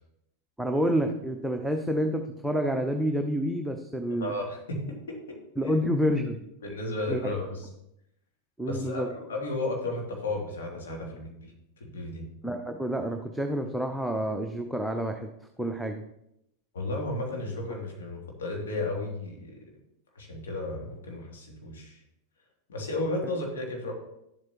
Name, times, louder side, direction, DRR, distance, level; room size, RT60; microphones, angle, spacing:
voice 1, 0.6-4.3 5.6-6.4 7.1-7.3 8.6-9.1 12.4-15.3 15.6-16.0, equal, ahead, 4 dB, 0.7 m, -28 dB
voice 2, 4.2-5.4 5.6-5.7 6.6-7.7 8.7-9.0 9.3-12.3 16.7-19.7 20.1-22.0 22.7-23.9, left 2 dB, 65° left, 0 dB, 2.6 m, -34 dB
11.5 x 7.6 x 2.9 m, 0.79 s
figure-of-eight pair, 90°, 0 cm